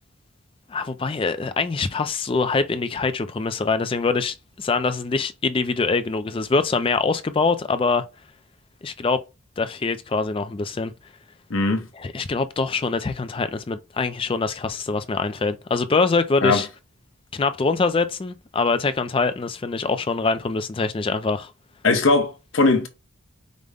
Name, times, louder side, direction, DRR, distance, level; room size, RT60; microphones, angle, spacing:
voice 1, 0.7-8.0 8.8-9.2 9.6-10.9 12.0-16.7 17.3-21.5, left 4 dB, 25° left, 0.3 m, -24 dB
voice 2, 11.5-11.9 16.4-16.6 21.8-22.9, left 3 dB, 70° left, 0.9 m, -19 dB
5.0 x 2.1 x 3.4 m
head